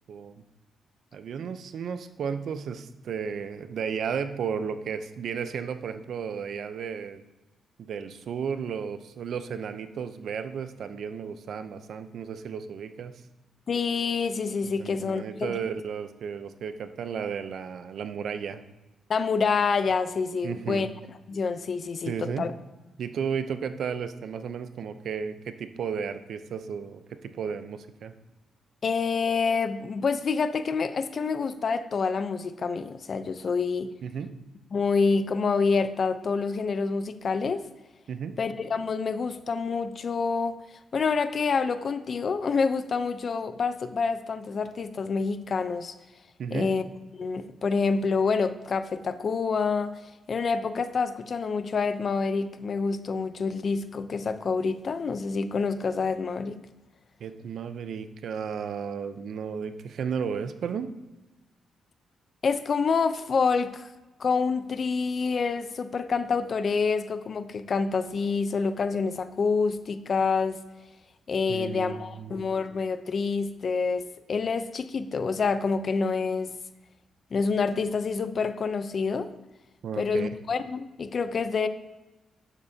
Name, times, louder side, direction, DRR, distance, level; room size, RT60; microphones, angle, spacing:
voice 1, 0.1-0.4 1.1-7.2 7.8-13.1 14.8-18.6 20.4-20.9 22.1-22.5 23.0-28.1 34.0-34.3 38.1-38.4 46.4-46.7 57.2-60.9 71.5-72.4 79.8-80.3, right 7 dB, 70° right, 10 dB, 0.7 m, -33 dB
voice 2, 13.7-15.5 19.1-20.9 21.3-22.5 28.8-33.9 34.7-37.6 38.4-40.5 40.9-45.9 46.5-46.8 47.1-49.9 50.3-56.6 62.4-63.9 64.2-70.6 71.3-76.5 77.3-79.3 80.0-81.7, left 5 dB, 50° left, 11 dB, 0.7 m, -27 dB
11.5 x 8.1 x 2.8 m, 1.1 s
cardioid pair, 80°, 0 cm